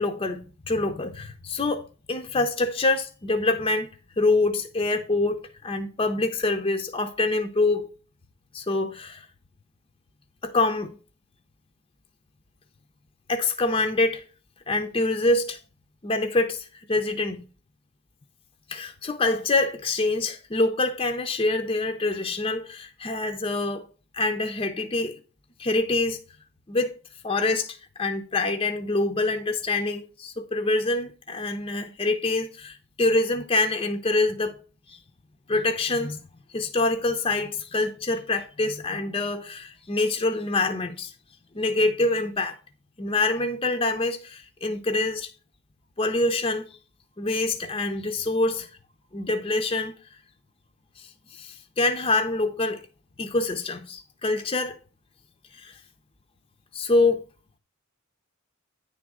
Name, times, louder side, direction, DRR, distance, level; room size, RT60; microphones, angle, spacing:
voice 1, 0.0-3.9 4.2-7.9 8.5-9.3 10.4-11.0 13.3-14.2 14.7-15.6 16.0-17.4 18.7-23.9 24.1-25.2 25.6-26.2 26.7-26.9 27.2-34.6 34.9-35.0 35.5-36.2 36.5-41.1 41.5-42.6 43.0-45.3 46.0-46.7 47.2-48.7 49.1-49.9 51.0-52.8 53.2-54.8 55.5-55.8 56.7-57.3, left 2 dB, 25° left, 0.6 m, -25 dB
9.3 x 3.6 x 6.1 m
head